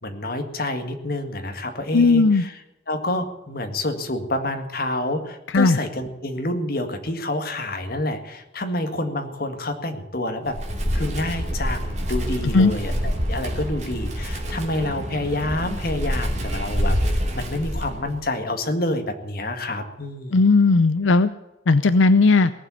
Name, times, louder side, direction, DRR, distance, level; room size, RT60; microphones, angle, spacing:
voice 1, 0.0-2.5 2.9-10.6 10.9-12.9 13.3-20.4, left 1 dB, 50° left, 6 dB, 1.9 m, -28 dB
voice 2, 1.9-2.4 5.5-5.8 12.5-12.7 20.3-21.3 21.7-22.5, left 3 dB, 90° left, 13 dB, 0.6 m, -16 dB
Wind, 10.5-18.2, equal, 40° right, 3.1 m, -26 dB
18.5 x 7.6 x 9.5 m, 0.98 s
head